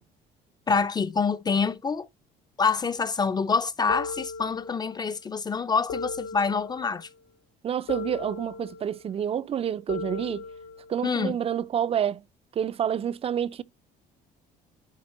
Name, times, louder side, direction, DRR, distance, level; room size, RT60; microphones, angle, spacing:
voice 1, 0.7-2.1 2.6-7.1 11.0-11.4, left 5 dB, 25° left, 0.4 m, -26 dB
sound 1, 3.9-5.1 5.9-7.1 7.9-9.1 9.9-11.1, left 4 dB, 85° left, 1.3 m, -37 dB
voice 2, 7.6-10.5 10.9-12.2 12.6-13.6, right 9 dB, 35° right, 0.4 m, -28 dB
10.5 x 3.6 x 3.0 m
cardioid pair, 110°, 17 cm